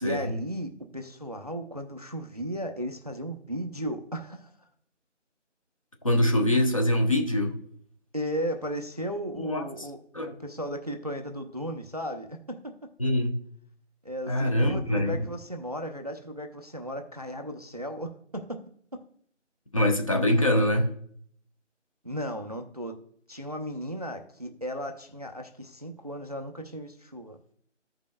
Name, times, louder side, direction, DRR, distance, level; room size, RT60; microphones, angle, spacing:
voice 1, 0.0-4.5 8.1-10.0 10.3-12.7 14.0-18.6 18.9-19.0 22.0-23.0 23.3-27.4, equal, 35° right, 0.5 m, -35 dB
voice 2, 6.0-7.6 9.4-9.6 10.1-10.3 13.0-13.4 14.3-15.2 19.7-20.9, left 1 dB, 30° left, 0.7 m, -24 dB
14.5 x 5.2 x 2.2 m
figure-of-eight pair, 165°, 37 cm